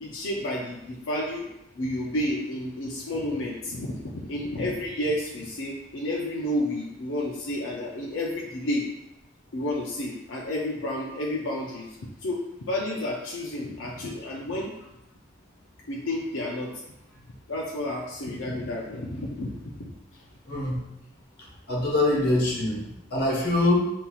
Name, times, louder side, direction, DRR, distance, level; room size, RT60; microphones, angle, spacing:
voice 1, 0.0-1.5 1.7-8.9 9.5-14.9 15.9-16.8 17.5-20.2, left 1 dB, 85° left, -2 dB, 0.6 m, -31 dB
voice 2, 20.5-20.8 21.7-23.9, left 2 dB, 55° left, -2 dB, 1.1 m, -24 dB
7.1 x 2.8 x 2.3 m, 0.89 s
head